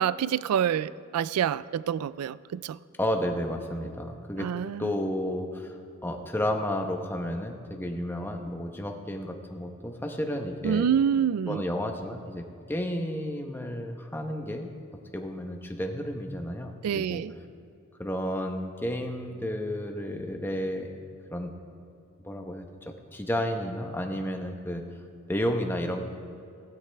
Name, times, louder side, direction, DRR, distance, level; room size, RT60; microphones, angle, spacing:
voice 1, 0.0-2.8 4.4-4.9 10.6-11.6 16.8-17.3, right 8 dB, 90° right, 19 dB, 0.3 m, -27 dB
voice 2, 3.0-4.5 4.8-10.9 11.5-14.7 15.1-17.2 18.0-20.9 21.3-21.5 22.2-22.6 23.1-24.8 25.3-26.0, equal, 10° left, 3 dB, 0.9 m, -32 dB
16.5 x 13.5 x 3.4 m, 2.5 s
head